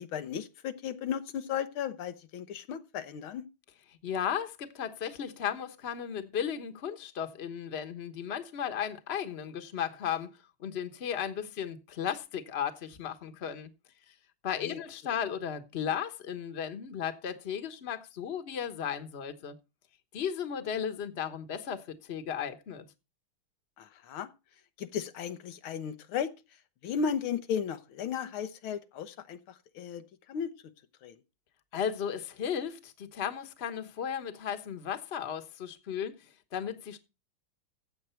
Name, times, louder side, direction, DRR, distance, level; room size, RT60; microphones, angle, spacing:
voice 1, 0.0-3.4 14.6-14.8 23.8-24.3 24.8-26.3 26.8-30.5 31.0-31.2, left 7 dB, 85° left, 1.8 m, -35 dB
voice 2, 4.0-13.7 14.1-14.2 14.4-19.6 20.1-22.8 31.7-37.0, left 8 dB, 40° left, 1.2 m, -35 dB
15.0 x 7.9 x 4.4 m
omnidirectional pair, 2.2 m